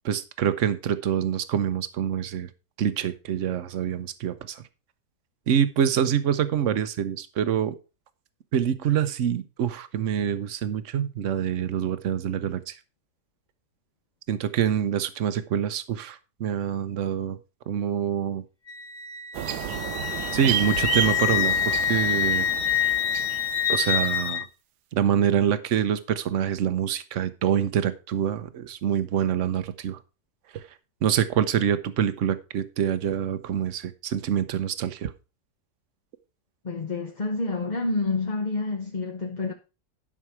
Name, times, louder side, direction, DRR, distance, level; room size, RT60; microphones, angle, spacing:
voice 1, 0.0-2.5 2.8-4.6 5.5-7.8 8.5-12.8 14.3-17.4 17.7-18.4 20.3-22.5 23.7-24.5 24.9-30.0 30.5-30.6 31.0-35.1, right 9 dB, 55° right, 1.1 m, -26 dB
Wind instrument woodwind instrument, 18.7-24.4, left 9 dB, 60° left, 1.2 m, -26 dB
sound 1, 19.3-24.2, right 11 dB, 85° right, 1.3 m, -32 dB
voice 2, 36.6-39.5, left 3 dB, 30° left, 1.0 m, -28 dB
11.0 x 5.8 x 4.6 m
omnidirectional pair, 1.7 m